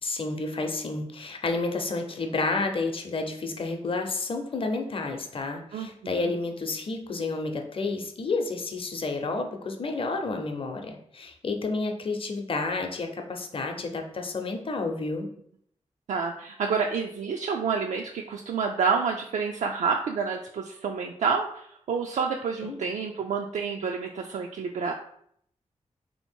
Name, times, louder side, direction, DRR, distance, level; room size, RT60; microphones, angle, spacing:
voice 1, 0.0-15.3 22.6-22.8, left 3 dB, 50° left, 4 dB, 0.6 m, -30 dB
voice 2, 5.7-6.3 16.1-24.9, right 5 dB, 85° right, 2 dB, 0.4 m, -29 dB
3.3 x 2.8 x 4.4 m, 0.68 s
wide cardioid pair, 90°, 12 cm